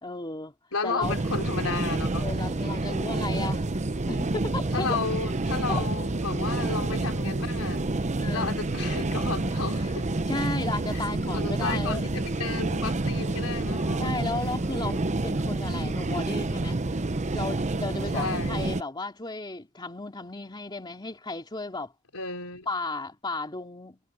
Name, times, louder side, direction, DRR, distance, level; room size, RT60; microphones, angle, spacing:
voice 1, 0.0-0.5 0.8-1.2 2.1-3.7 4.1-5.0 5.7-5.9 8.2-8.6 9.6-9.9 10.3-12.1 14.0-16.9 17.3-21.9 22.7-24.0, left 2 dB, 20° left, 2.9 m, -35 dB
voice 2, 0.7-2.3 4.7-7.9 8.3-10.1 10.9-11.1 11.3-14.2 18.1-18.6 22.1-22.7, left 4 dB, 75° left, 4.0 m, -33 dB
sound 1, 1.0-18.8, right 2 dB, 35° right, 0.8 m, -28 dB
head